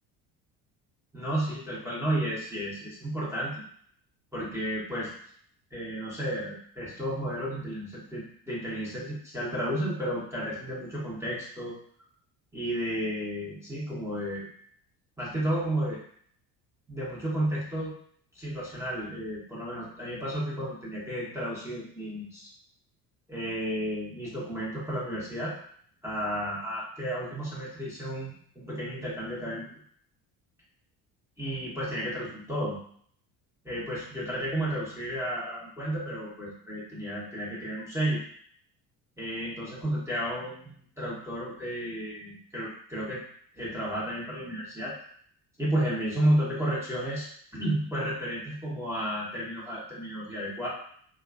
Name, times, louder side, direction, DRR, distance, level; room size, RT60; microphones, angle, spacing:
voice 1, 1.1-3.6 4.3-5.1 5.7-11.7 12.5-14.5 15.2-16.0 16.9-17.9 18.3-22.5 23.3-25.5 26.0-29.7 31.4-32.8 33.6-38.2 39.2-43.2 43.5-44.9 45.6-47.3 47.5-50.7, right 1 dB, 5° right, -8 dB, 0.8 m, -32 dB
2.3 x 2.3 x 2.4 m, 0.62 s
hypercardioid pair, 60°, 49 cm